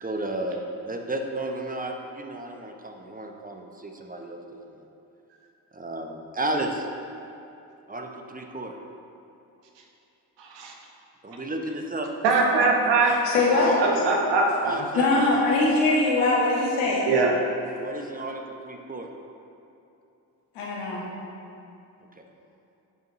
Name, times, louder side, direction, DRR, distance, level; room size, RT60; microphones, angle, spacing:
voice 1, 0.0-4.7 5.7-6.9 7.9-8.7 11.2-12.1 14.6-15.1 17.8-19.1 22.2-22.3, right 1 dB, 20° right, 3 dB, 0.9 m, -33 dB
voice 2, 10.4-10.7 12.2-13.2 13.8-14.7 17.1-17.3, right 3 dB, 70° right, 0 dB, 1.2 m, -22 dB
voice 3, 13.0-13.7 14.9-17.1 20.5-21.0, left 2 dB, 80° left, -5 dB, 1.6 m, -22 dB
9.5 x 5.2 x 3.1 m, 2.8 s
hypercardioid pair, 50°, 44 cm